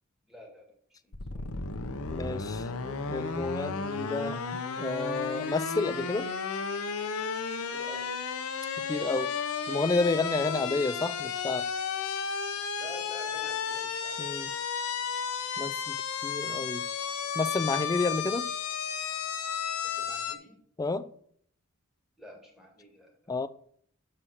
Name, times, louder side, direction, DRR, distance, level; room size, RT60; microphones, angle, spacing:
voice 1, 0.3-0.7 1.0-1.5 7.7-8.1 12.8-14.4 19.8-20.6 22.2-23.2, equal, ahead, 1.8 m, -49 dB
sound 1, 1.1-20.4, left 6 dB, 70° left, 0.8 m, -33 dB
voice 2, 2.1-6.3 8.9-9.3 9.7-11.6 14.2-14.5 15.6-16.0 16.2-16.8 17.4-18.5 20.8-21.1 23.3-23.5, left 3 dB, 15° left, 0.3 m, -30 dB
6.6 x 5.7 x 6.3 m
head